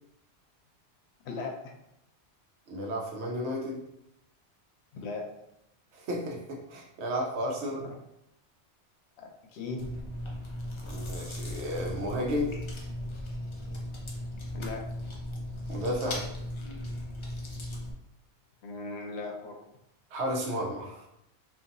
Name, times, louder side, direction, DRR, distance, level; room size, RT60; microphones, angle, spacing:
voice 1, 1.2-1.6 4.9-5.3 7.8-7.9 9.2-9.9 14.5-14.9 18.6-19.6, left 3 dB, 75° left, 1 dB, 0.8 m, -38 dB
voice 2, 2.7-3.8 5.9-7.9 10.9-12.5 15.7-16.2 20.1-21.1, equal, 80° right, 0 dB, 0.9 m, -32 dB
Chewing mastication, 9.8-17.9, left 1 dB, 55° left, 0.3 m, -37 dB
2.7 x 2.5 x 2.5 m, 0.80 s
omnidirectional pair, 1.1 m